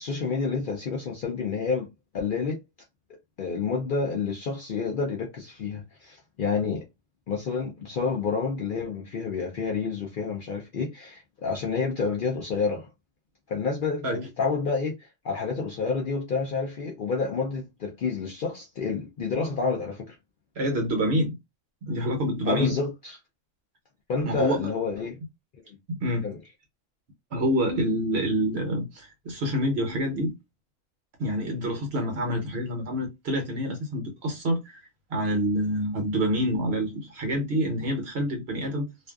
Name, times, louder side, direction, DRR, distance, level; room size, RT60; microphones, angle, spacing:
voice 1, 0.0-1.9 2.1-2.6 3.4-6.8 7.3-12.9 13.5-14.1 14.4-20.2 22.5-23.2 24.1-25.2 26.2-26.4, left 4 dB, 60° left, 0.5 m, -29 dB
voice 2, 20.6-21.4 21.8-22.8 24.2-24.7 25.9-26.3 27.3-30.4 31.2-34.8 35.1-38.9, equal, 60° right, 0.9 m, -27 dB
2.5 x 2.3 x 2.2 m
omnidirectional pair, 1.3 m